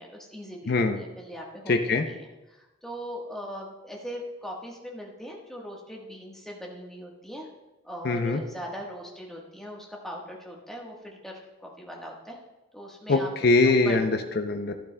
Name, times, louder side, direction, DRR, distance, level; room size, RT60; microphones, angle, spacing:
voice 1, 0.0-7.5 7.8-12.4 12.7-13.3 13.6-14.0, equal, ahead, -2 dB, 1.2 m, -40 dB
voice 2, 0.7-1.0 1.7-2.0 8.0-8.4 13.1-14.7, left 3 dB, 50° left, 5 dB, 0.5 m, -23 dB
12.0 x 11.5 x 2.2 m, 1.0 s
head